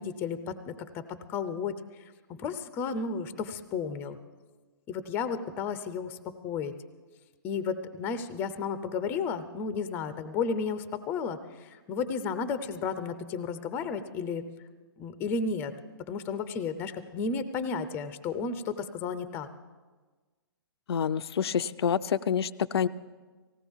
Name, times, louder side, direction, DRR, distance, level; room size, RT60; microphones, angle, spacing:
voice 1, 0.0-1.8 2.3-4.2 4.9-6.2 6.4-6.7 7.4-14.5 15.0-15.7 16.1-19.5, left 5 dB, 15° left, 12 dB, 0.5 m, -33 dB
voice 2, 20.9-22.9, left 8 dB, 75° left, 14 dB, 0.4 m, -27 dB
18.5 x 16.5 x 3.5 m, 1.3 s
hypercardioid pair, 155°, 13 cm